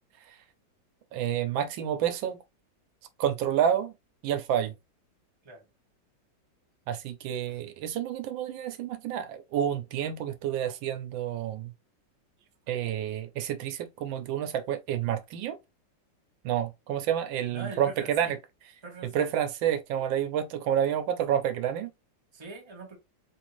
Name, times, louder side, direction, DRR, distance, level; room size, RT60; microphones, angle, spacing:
voice 1, 1.1-2.4 3.2-3.9 4.2-4.7 6.9-11.7 12.7-15.6 16.4-18.4 19.1-21.9, right 10 dB, 85° right, 1.4 m, -29 dB
voice 2, 17.5-18.4 18.8-19.3 22.3-23.0, right 2 dB, 20° right, 0.8 m, -42 dB
3.7 x 2.6 x 3.0 m
omnidirectional pair, 2.0 m